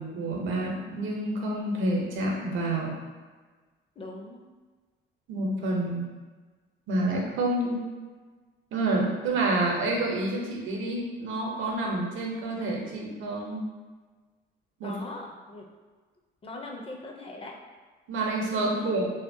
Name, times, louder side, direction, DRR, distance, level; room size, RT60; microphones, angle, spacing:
voice 1, 0.0-2.9 5.3-6.1 6.9-7.9 8.7-13.6 14.8-15.0 18.1-19.1, right 2 dB, 80° right, -1 dB, 0.6 m, -28 dB
voice 2, 4.0-4.4 14.8-15.7 16.4-17.6 18.5-19.0, left 2 dB, 30° left, 1 dB, 0.5 m, -41 dB
2.7 x 2.1 x 2.6 m, 1.4 s
cardioid pair, 90°, 20 cm